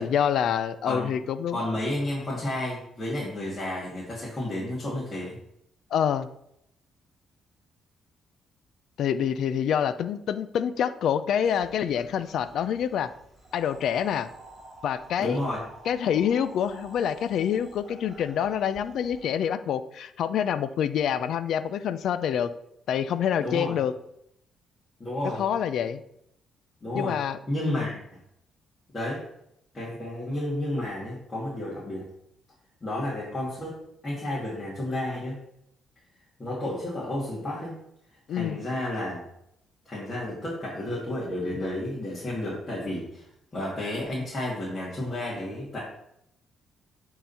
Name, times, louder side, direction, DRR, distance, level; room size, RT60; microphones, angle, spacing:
voice 1, 0.0-1.6 5.9-6.3 9.0-13.1 13.5-14.3 14.8-15.4 15.9-22.5 22.9-23.9 25.4-26.0 26.9-27.9 38.3-38.6, left 8 dB, 70° left, 13 dB, 0.5 m, -27 dB
voice 2, 1.5-5.4 15.2-15.6 23.4-23.8 25.0-25.4 26.8-27.2 27.5-28.0 28.9-29.2 29.7-32.1 32.8-33.8 34.0-35.4 36.4-37.8 38.3-39.2 39.8-43.3 43.5-45.8, left 1 dB, 30° left, -8 dB, 2.7 m, -31 dB
sound 1, 11.4-19.3, right 1 dB, 25° right, 2.1 m, -49 dB
9.4 x 3.9 x 4.4 m, 0.76 s
cardioid pair, 90°, 0 cm